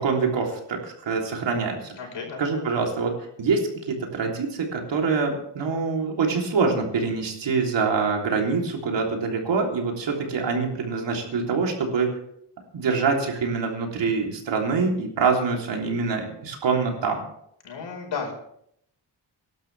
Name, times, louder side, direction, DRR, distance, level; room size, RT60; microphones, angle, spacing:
voice 1, 0.0-1.9 2.4-3.1 3.4-3.6 3.9-12.1 12.7-17.2, right 4 dB, 85° right, 1 dB, 3.5 m, -25 dB
voice 2, 2.0-2.4 17.6-18.3, left 5 dB, 90° left, 1 dB, 5.0 m, -33 dB
23.5 x 12.0 x 3.5 m, 0.72 s
wide cardioid pair, 175°, 43 cm